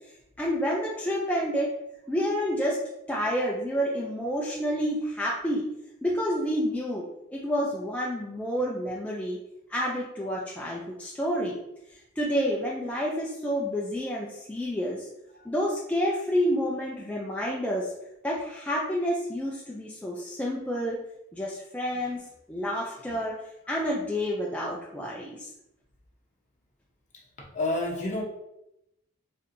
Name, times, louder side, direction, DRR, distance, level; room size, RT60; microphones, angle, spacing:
voice 1, 0.4-1.7 2.1-2.8 3.1-5.6 6.0-7.0 7.3-9.4 9.7-11.5 12.2-15.1 15.4-17.9 18.2-21.0 21.3-22.2 22.5-23.3 23.7-25.5, equal, 5° left, -4 dB, 0.3 m, -29 dB
voice 2, 27.4-28.2, left 2 dB, 35° left, -2 dB, 0.8 m, -30 dB
4.2 x 2.6 x 2.6 m, 0.85 s
head